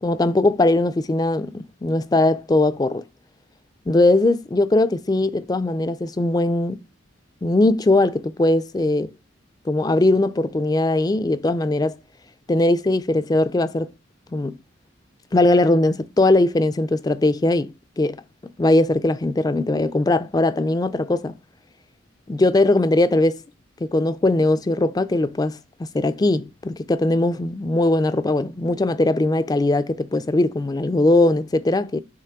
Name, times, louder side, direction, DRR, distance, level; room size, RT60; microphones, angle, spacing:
voice 1, 0.0-3.0 3.9-6.8 7.4-9.1 9.7-12.0 12.5-13.9 14.3-14.6 15.3-21.3 22.3-23.4 23.8-32.0, left 2 dB, 20° left, 0.3 m, -20 dB
6.7 x 3.0 x 5.7 m
head